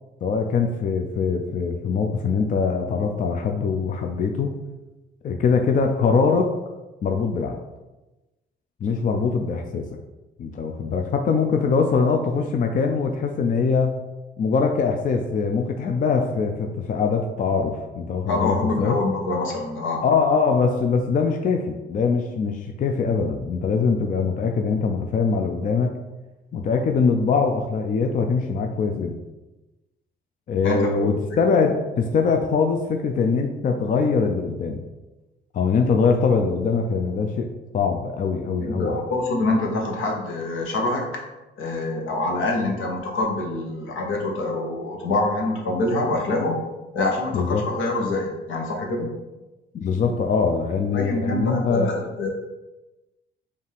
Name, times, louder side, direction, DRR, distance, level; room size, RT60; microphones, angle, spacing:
voice 1, 0.2-4.5 5.2-6.5 7.0-7.6 8.8-9.9 10.4-14.0 14.4-19.0 20.0-26.0 26.5-29.2 30.5-34.8 35.5-39.0 47.3-47.6 49.7-52.0, left 5 dB, 40° left, 4 dB, 0.4 m, -22 dB
voice 2, 18.3-20.0 30.6-31.4 38.6-41.0 41.6-46.5 46.9-49.1 50.9-52.3, left 2 dB, 80° left, 0 dB, 1.0 m, -25 dB
5.1 x 2.5 x 3.4 m, 1.1 s
cardioid pair, 90°, 20 cm